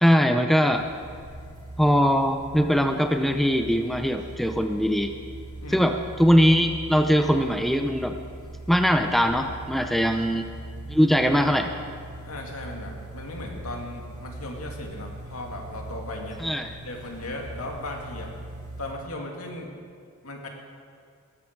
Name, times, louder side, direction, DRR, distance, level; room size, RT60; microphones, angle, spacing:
voice 1, 0.0-0.9 1.8-5.1 5.7-8.1 8.7-10.5 10.9-11.7 16.4-16.7, equal, ahead, 6 dB, 0.5 m, -21 dB
sound 1, 0.7-18.9, right 2 dB, 40° right, 4.0 m, -41 dB
voice 2, 9.7-10.1 12.2-16.4 16.8-18.3 18.8-19.7 20.2-20.5, left 2 dB, 80° left, 1 dB, 2.5 m, -37 dB
18.5 x 13.5 x 4.7 m, 2.1 s
head